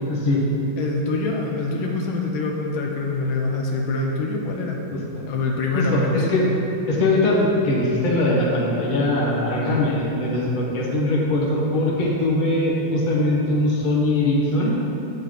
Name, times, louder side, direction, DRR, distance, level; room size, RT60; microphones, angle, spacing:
voice 1, 0.0-0.4 5.7-6.5 6.9-14.8, left 1 dB, 30° left, -4 dB, 0.9 m, -21 dB
voice 2, 0.8-4.8 5.2-6.3, left 3 dB, 75° left, 0 dB, 1.5 m, -25 dB
8.1 x 7.2 x 3.9 m, 2.9 s
omnidirectional pair, 2.3 m